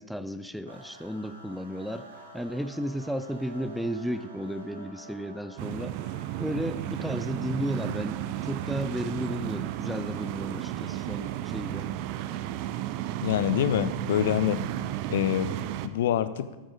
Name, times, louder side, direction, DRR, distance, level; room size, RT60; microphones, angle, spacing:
voice 1, 0.0-2.1 2.3-6.0 6.4-11.9, equal, ahead, 11 dB, 0.6 m, -33 dB
sound 1, 0.7-14.9, right 2 dB, 75° right, 2.1 m, -50 dB
sound 2, 5.6-15.9, right 13 dB, 45° right, 0.5 m, -33 dB
voice 2, 13.2-14.6 15.1-15.5 15.8-16.5, left 11 dB, 60° left, 14 dB, 0.6 m, -25 dB
13.0 x 9.1 x 4.8 m, 1.2 s
figure-of-eight pair, 90°, 0 cm